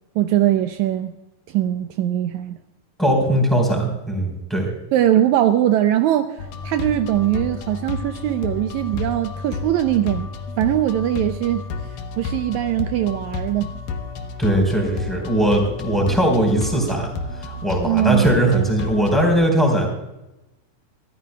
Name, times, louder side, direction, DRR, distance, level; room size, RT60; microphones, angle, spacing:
voice 1, 0.2-1.1 1.5-2.6 4.9-10.3 10.6-11.7 12.2-13.7 17.8-18.3, right 12 dB, 80° right, 8 dB, 1.9 m, -21 dB
voice 2, 3.0-4.7 14.4-17.1 17.4-19.9, right 1 dB, ahead, 1 dB, 4.0 m, -19 dB
sound 1, 6.4-19.3, left 3 dB, 85° left, 2.6 m, -31 dB
25.5 x 14.0 x 2.3 m, 0.94 s
omnidirectional pair, 3.5 m